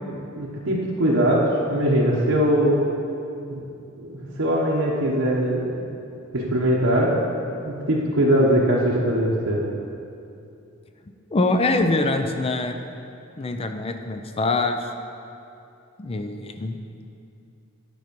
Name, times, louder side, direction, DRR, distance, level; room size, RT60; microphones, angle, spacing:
voice 1, 0.0-2.8 3.5-3.6 4.0-5.8 6.3-7.2 7.6-9.6, equal, 70° right, -5 dB, 1.0 m, -21 dB
voice 2, 11.3-12.8 13.4-14.8 16.0-16.8, left 2 dB, 25° left, 7 dB, 0.4 m, -24 dB
9.4 x 5.8 x 5.2 m, 2.6 s
head